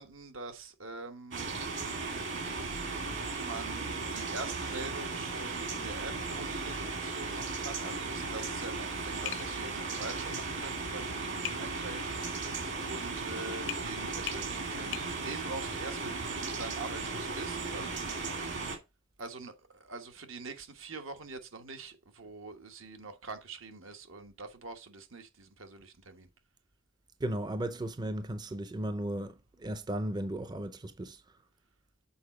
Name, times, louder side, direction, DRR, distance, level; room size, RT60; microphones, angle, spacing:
voice 1, 0.0-1.4 3.4-18.0 19.2-26.3, right 3 dB, 80° right, 1.2 m, -44 dB
sound 1, 1.3-18.8, right 3 dB, 65° right, 2.2 m, -36 dB
Tap, 9.3-9.5 11.5-11.6 13.7-13.9 14.3-14.5 14.9-15.1, left 13 dB, 65° left, 0.6 m, -37 dB
voice 2, 27.2-31.2, right 1 dB, 20° right, 0.5 m, -35 dB
7.0 x 4.1 x 4.8 m
head